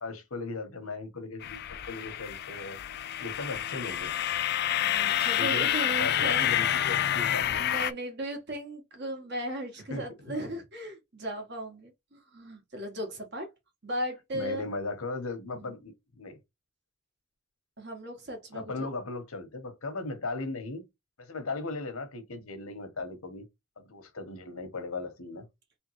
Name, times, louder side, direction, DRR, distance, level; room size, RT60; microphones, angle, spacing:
voice 1, 0.0-2.8 3.2-4.1 5.4-5.7 6.0-7.7 9.9-10.0 14.3-16.4 18.5-20.9 21.2-23.4 23.8-25.5, left 3 dB, 85° left, 1.2 m, -37 dB
sound 1, 1.4-7.9, left 11 dB, 50° left, 0.3 m, -28 dB
voice 2, 4.8-6.5 7.5-13.5 13.8-14.7 15.5-15.7 17.8-18.9, right 1 dB, 50° right, 1.6 m, -37 dB
3.6 x 3.4 x 3.1 m
head